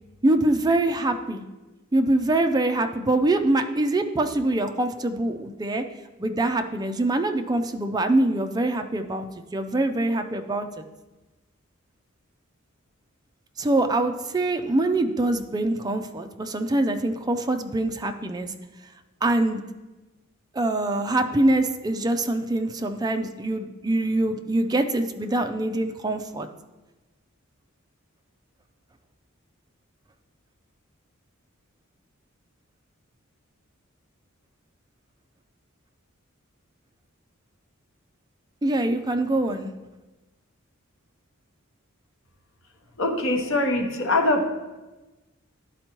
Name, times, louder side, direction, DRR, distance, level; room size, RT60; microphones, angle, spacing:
voice 1, 0.2-1.4 1.9-5.8 6.2-9.2 9.5-10.8 13.6-18.5 19.2-19.6 20.5-26.5 38.6-39.7, right 2 dB, 20° right, 7 dB, 0.4 m, -24 dB
voice 2, 43.0-44.5, left 2 dB, 70° left, 2 dB, 1.0 m, -23 dB
11.5 x 4.3 x 3.0 m, 1.1 s
head